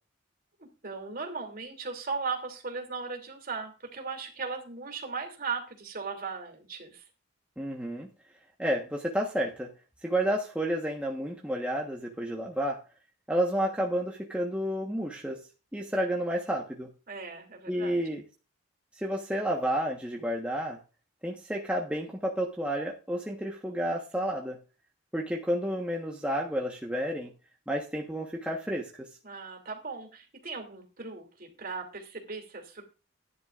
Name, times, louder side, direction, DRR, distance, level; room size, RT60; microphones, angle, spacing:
voice 1, 0.6-7.0 17.1-18.0 29.2-32.8, right 4 dB, 45° right, 3 dB, 2.9 m, -37 dB
voice 2, 7.6-8.1 8.6-9.7 10.0-12.8 13.3-15.4 15.7-16.9 17.7-18.2 19.0-20.8 21.2-24.6 25.1-27.3 27.7-29.1, equal, 5° right, -1 dB, 1.2 m, -30 dB
15.5 x 10.5 x 2.5 m, 0.33 s
head